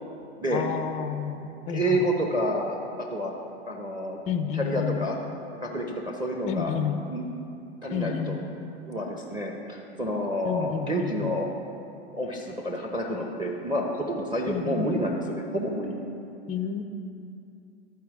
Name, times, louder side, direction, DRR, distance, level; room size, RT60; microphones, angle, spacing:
voice 1, 0.5-2.1 4.3-5.1 6.5-7.0 7.9-8.4 10.4-11.4 14.5-15.0 16.5-16.8, left 7 dB, 20° left, 7 dB, 0.4 m, -30 dB
voice 2, 1.7-3.3 3.7-4.2 4.5-5.2 5.5-6.7 7.1-7.2 7.8-8.4 8.9-11.5 12.1-16.0, equal, 15° right, 0 dB, 0.8 m, -29 dB
13.0 x 4.5 x 3.5 m, 2.5 s
hypercardioid pair, 100°, 33 cm